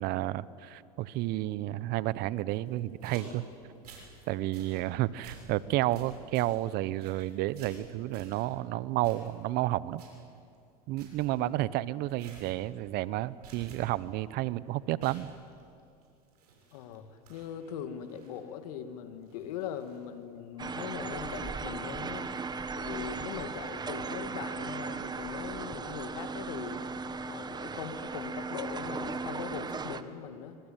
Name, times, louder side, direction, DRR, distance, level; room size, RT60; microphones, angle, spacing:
voice 1, 0.0-3.4 4.3-10.0 10.9-15.3, right 16 dB, 55° right, 19 dB, 0.9 m, -31 dB
sound 1, 2.7-4.3 4.5-4.8 5.2-5.6 5.9-8.5 9.0-9.6 9.9-10.3 10.5-10.6 11.0-11.3 12.1-12.6 12.9-13.2 13.4-14.1 14.4-14.5 15.0-17.0 17.3-18.4 19.2-20.2 20.9-21.5, right 4 dB, 90° right, 6.9 m, -51 dB
voice 2, 16.7-22.3 22.7-30.6, left 9 dB, 75° left, 9 dB, 2.4 m, -41 dB
sound 2, 20.6-30.0, right 4 dB, 20° right, 1.3 m, -37 dB
25.0 x 25.0 x 9.1 m, 2.6 s
hypercardioid pair, 100°, 19 cm